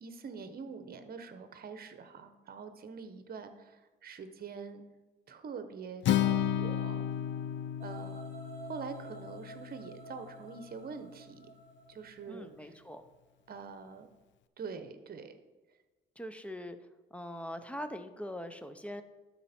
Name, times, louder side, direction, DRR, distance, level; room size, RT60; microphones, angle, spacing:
voice 1, 0.0-4.8 5.3-7.0 7.8-8.3 8.7-11.4 11.9-12.7 13.5-14.1 14.6-15.4, right 5 dB, 50° right, 9 dB, 1.0 m, -45 dB
Acoustic guitar, 6.0-10.3, left 10 dB, 70° left, 0.5 m, -33 dB
sound 1, 7.8-12.9, right 3 dB, 35° right, 1.5 m, -51 dB
voice 2, 12.3-13.0 16.2-16.8 17.1-19.0, equal, 5° left, 9 dB, 0.7 m, -42 dB
12.0 x 4.4 x 4.4 m, 1.2 s
cardioid pair, 90°, 20 cm